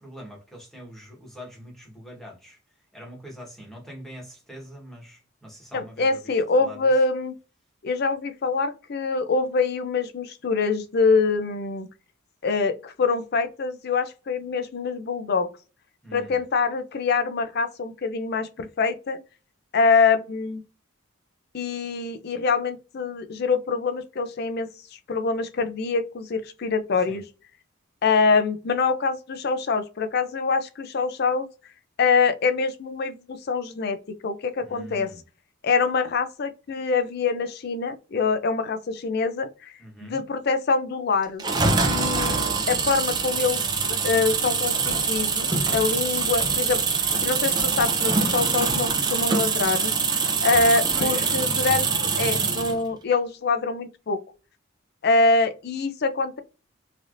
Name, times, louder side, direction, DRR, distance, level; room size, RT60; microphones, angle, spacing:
voice 1, 0.0-2.6 2.9-6.9 16.0-16.4 27.1-27.2 34.6-35.2 39.8-40.2 50.9-51.4, equal, ahead, 1.2 m, -43 dB
voice 2, 5.7-7.3 7.8-11.9 12.4-15.5 16.1-19.2 19.7-20.6 21.5-24.7 25.1-27.2 28.0-31.5 32.0-35.1 35.6-39.7 40.0-41.4 41.8-46.8 47.2-49.9 50.4-51.9 52.2-54.2 55.0-56.4, left 4 dB, 50° left, 0.4 m, -24 dB
sound 1, 41.4-52.8, right 4 dB, 20° right, 0.5 m, -24 dB
3.3 x 2.6 x 2.5 m
head